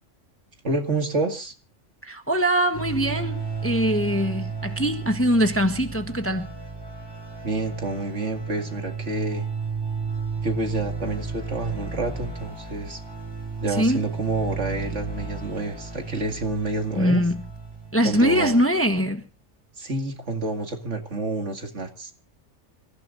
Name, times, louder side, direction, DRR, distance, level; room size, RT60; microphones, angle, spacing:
voice 1, 0.6-1.5 7.4-9.5 10.4-13.0 13.6-17.2 18.0-18.6 19.8-22.1, right 2 dB, 60° right, 2.5 m, -28 dB
voice 2, 2.0-6.5 13.7-14.0 16.9-17.4 17.9-19.3, equal, 10° left, 1.1 m, -22 dB
sound 1, 2.7-18.7, right 5 dB, 20° right, 6.4 m, -33 dB
28.0 x 15.5 x 2.6 m
omnidirectional pair, 1.3 m